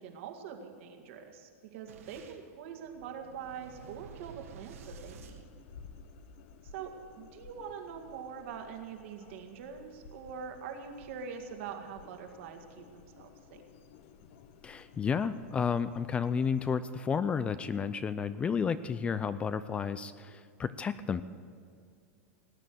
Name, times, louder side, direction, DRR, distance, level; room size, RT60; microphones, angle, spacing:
voice 1, 0.0-5.4 6.6-13.6, right 7 dB, 60° right, 4 dB, 2.1 m, -44 dB
Boom, 1.9-6.3, right 5 dB, 75° right, 1.8 m, -52 dB
sound 1, 4.8-16.7, left 5 dB, 55° left, 1.1 m, -55 dB
voice 2, 14.6-21.2, left 6 dB, 15° left, 14 dB, 0.4 m, -32 dB
18.5 x 9.0 x 7.8 m, 2.3 s
supercardioid pair, 150°, 7 cm